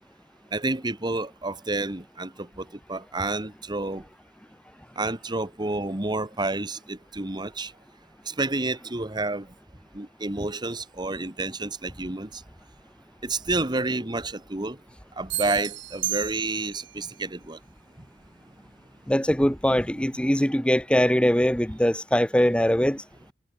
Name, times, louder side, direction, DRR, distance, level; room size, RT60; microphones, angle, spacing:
voice 1, 0.5-4.0 5.0-7.7 8.3-9.5 9.9-12.4 13.2-14.8 15.2-17.6 19.9-20.1, right 2 dB, 25° right, 1.4 m, -29 dB
sound 1, 15.3-16.9, right 14 dB, 80° right, 1.1 m, -32 dB
voice 2, 19.1-23.0, equal, 5° left, 1.5 m, -22 dB
head